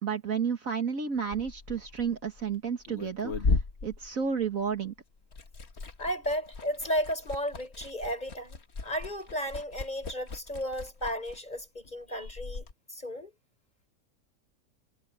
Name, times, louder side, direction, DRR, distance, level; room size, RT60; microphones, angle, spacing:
voice 1, 0.0-4.9, right 6 dB, 55° right, 2.0 m, -31 dB
Liquid, 1.2-4.9 5.1-12.7, left 3 dB, 45° left, 1.8 m, -36 dB
voice 2, 6.0-13.3, equal, 25° left, 5.6 m, -34 dB
omnidirectional pair, 1.7 m